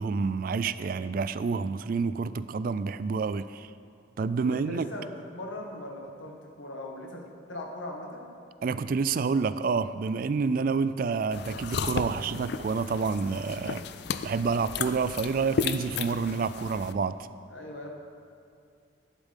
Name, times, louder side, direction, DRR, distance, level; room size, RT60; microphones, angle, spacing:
voice 1, 0.0-3.7 4.2-4.9 8.6-13.8 14.2-17.2, right 5 dB, 50° right, 14 dB, 0.3 m, -28 dB
voice 2, 4.4-8.3 17.5-17.9, left 1 dB, 80° left, 0 dB, 1.8 m, -40 dB
sound 1, 11.3-16.9, left 5 dB, 60° left, 0.4 m, -34 dB
12.0 x 11.5 x 3.7 m, 2.5 s
head